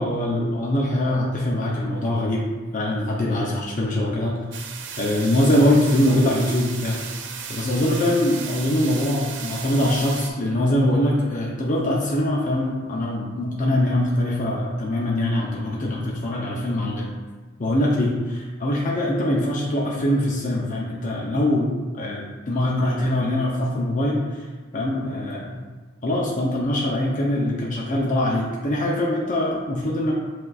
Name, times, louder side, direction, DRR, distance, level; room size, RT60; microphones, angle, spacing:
voice 1, 0.0-2.5 2.7-4.4 5.0-7.0 7.5-17.2 17.6-24.4 24.7-25.6 26.0-30.1, left 1 dB, 40° left, -3 dB, 0.6 m, -23 dB
sound 1, 4.5-10.3, right 6 dB, 60° right, 0.5 m, -35 dB
7.8 x 2.6 x 2.4 m, 1.3 s
head